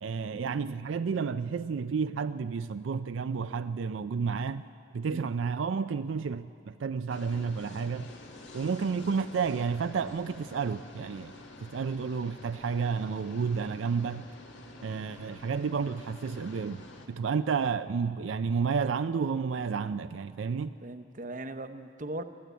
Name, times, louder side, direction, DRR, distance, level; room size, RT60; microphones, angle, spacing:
voice 1, 0.0-4.6 4.9-8.1 8.5-11.3 11.6-14.3 14.8-20.7, right 5 dB, 80° right, 11 dB, 0.4 m, -31 dB
sound 1, 7.1-17.1, left 2 dB, 75° left, 2.0 m, -48 dB
voice 2, 20.8-22.2, right 1 dB, 45° right, 9 dB, 0.8 m, -39 dB
20.5 x 14.0 x 9.1 m, 2.5 s
head